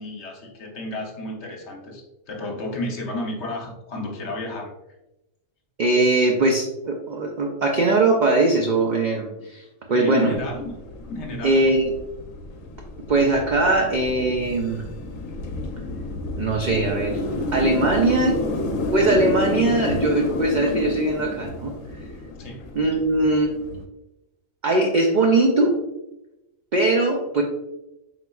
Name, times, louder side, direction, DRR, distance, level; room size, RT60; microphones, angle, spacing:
voice 1, 0.0-4.7 9.9-10.7 11.0-11.6 22.4-22.7, left 1 dB, 65° left, 1 dB, 1.1 m, -32 dB
voice 2, 5.8-10.3 11.4-11.9 13.1-14.8 16.4-17.2 17.5-18.4 18.9-21.7 22.7-23.5 24.6-25.8 26.7-27.4, right 2 dB, 65° right, 1 dB, 0.4 m, -20 dB
sound 1, 10.3-23.8, left 2 dB, 85° left, 1.0 m, -29 dB
4.2 x 4.0 x 2.3 m, 0.94 s
omnidirectional pair, 1.3 m